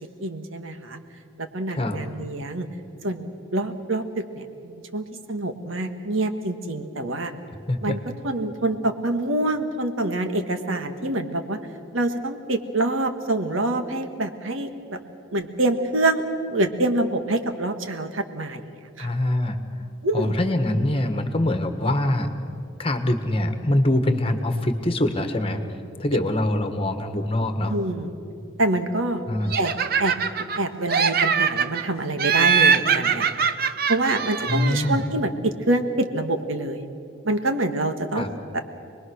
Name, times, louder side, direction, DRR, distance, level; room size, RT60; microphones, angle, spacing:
voice 1, 0.2-1.0 1.4-2.7 3.0-7.3 7.8-8.0 8.2-11.6 11.9-15.0 15.3-16.2 16.5-18.6 19.0-19.1 20.0-20.4 27.7-28.2 28.6-29.2 29.6-29.7 30.0-30.2 30.6-33.4 33.9-36.9 37.2-38.2, right 2 dB, 65° right, 7 dB, 1.7 m, -26 dB
voice 2, 19.0-19.6 20.1-22.3 22.8-25.6 26.0-27.8 29.3-29.5 34.4-35.0 38.1-38.3, left 1 dB, 25° left, 7 dB, 1.5 m, -24 dB
Laughter, 29.5-30.6 30.9-31.8 32.2-35.0, right 6 dB, 45° right, 0.9 m, -22 dB
28.0 x 20.5 x 6.4 m, 2.6 s
head